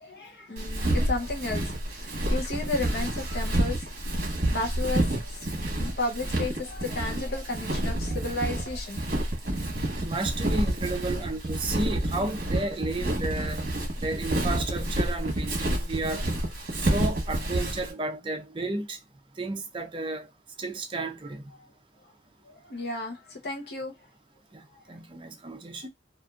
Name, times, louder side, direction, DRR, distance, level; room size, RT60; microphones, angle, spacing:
voice 1, 0.0-3.9 4.5-5.5 5.8-9.2 22.5-23.9, left 2 dB, 60° left, 0.8 m, -33 dB
Walk footsteps, 0.6-17.9, right 1 dB, 50° right, 1.1 m, -29 dB
voice 2, 9.9-13.6 14.0-16.3 16.8-19.0 19.4-20.3 20.6-21.4 24.5-25.9, right 2 dB, 30° right, 0.5 m, -33 dB
2.9 x 2.5 x 2.3 m
head